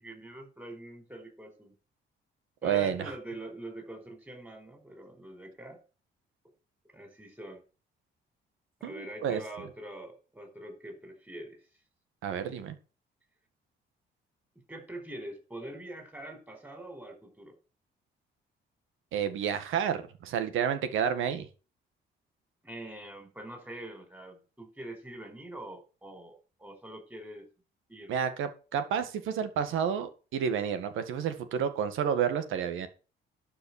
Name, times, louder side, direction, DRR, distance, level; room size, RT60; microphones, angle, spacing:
voice 1, 0.0-1.7 2.6-5.8 6.9-7.6 8.8-11.6 14.7-17.6 22.6-27.5 27.9-28.1, right 1 dB, 10° right, 5 dB, 4.9 m, -44 dB
voice 2, 2.6-3.1 8.8-9.4 12.2-12.8 19.1-21.5 28.1-32.9, right 8 dB, 85° right, 9 dB, 1.8 m, -30 dB
12.0 x 5.7 x 7.2 m, 0.35 s
cardioid pair, 90°, 20 cm